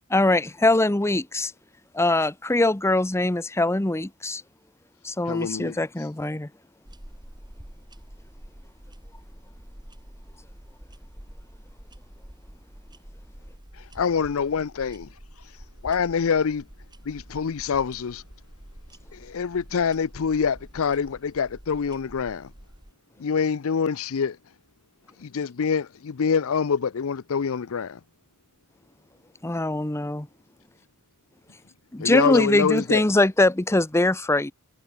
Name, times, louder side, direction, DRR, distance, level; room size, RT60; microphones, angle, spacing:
voice 1, 0.1-1.5 1.9-4.4 5.0-6.5 29.4-30.3 31.9-34.5, left 2 dB, 10° left, 0.7 m, -22 dB
voice 2, 5.3-5.8 13.8-15.1 15.8-16.6 17.1-18.2 19.1-22.5 23.2-24.4 25.2-28.0 32.0-33.0, left 6 dB, 65° left, 0.5 m, -25 dB
sound 1, 6.9-22.9, equal, 20° right, 2.3 m, -47 dB
voice 3, 15.1-16.3 17.0-17.6 18.3-19.5 22.9-23.3 24.8-25.4 28.6-28.7 29.0-29.2 30.6-30.9 31.5-32.1, left 3 dB, 80° left, 4.7 m, -56 dB
head